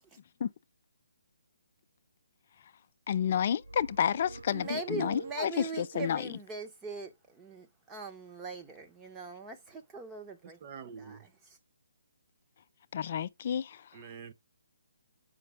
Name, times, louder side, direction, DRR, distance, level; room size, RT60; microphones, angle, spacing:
voice 1, 3.1-6.3 12.9-13.9, left 8 dB, 45° left, 0.4 m, -30 dB
sound 1, 3.6-6.0, right 3 dB, 90° right, 0.5 m, -47 dB
voice 2, 4.5-10.6 11.0-11.6, right 3 dB, 10° right, 0.9 m, -41 dB
voice 3, 10.4-11.3 13.9-14.3, right 6 dB, 35° right, 0.6 m, -46 dB
6.7 x 5.2 x 3.4 m
hypercardioid pair, 155°, 0 cm